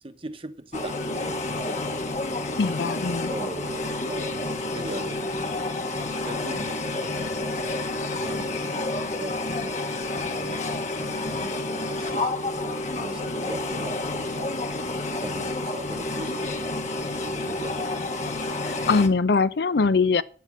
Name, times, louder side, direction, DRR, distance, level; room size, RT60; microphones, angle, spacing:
voice 1, 0.0-2.5 3.0-5.5 6.2-14.6 15.2-16.6 17.3-18.1, right 1 dB, 30° right, 0.9 m, -40 dB
sound 1, 0.7-19.1, left 2 dB, 40° left, 1.2 m, -29 dB
voice 2, 2.6-3.3 18.6-20.2, left 4 dB, 65° left, 0.5 m, -22 dB
9.2 x 8.4 x 6.1 m
head